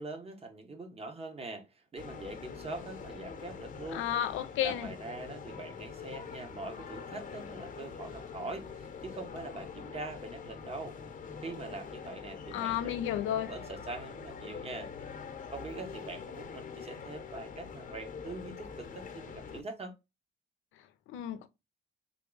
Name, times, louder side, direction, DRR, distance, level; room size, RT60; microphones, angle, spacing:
voice 1, 0.0-4.0 4.6-11.0 11.4-13.0 13.3-14.9 15.5-19.9, right 3 dB, 30° right, 1.0 m, -43 dB
sound 1, 2.0-19.6, left 6 dB, 45° left, 0.9 m, -44 dB
voice 2, 3.9-4.9 12.5-13.5 20.7-21.5, left 11 dB, 90° left, 0.5 m, -33 dB
3.7 x 2.3 x 3.7 m
cardioid pair, 90°, 20 cm